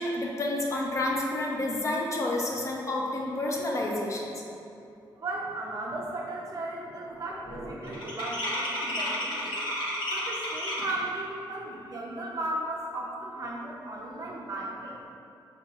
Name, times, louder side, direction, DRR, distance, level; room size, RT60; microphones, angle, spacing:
voice 1, 0.0-4.3, left 2 dB, 40° left, -2 dB, 0.5 m, -29 dB
voice 2, 5.2-9.6 10.1-15.0, right 2 dB, 45° right, -3 dB, 0.4 m, -36 dB
sound 1, 5.5-5.6 5.9-6.3 6.5-11.1, left 1 dB, 70° left, 0.8 m, -33 dB
4.2 x 2.2 x 2.8 m, 2.7 s
wide cardioid pair, 115°, 8 cm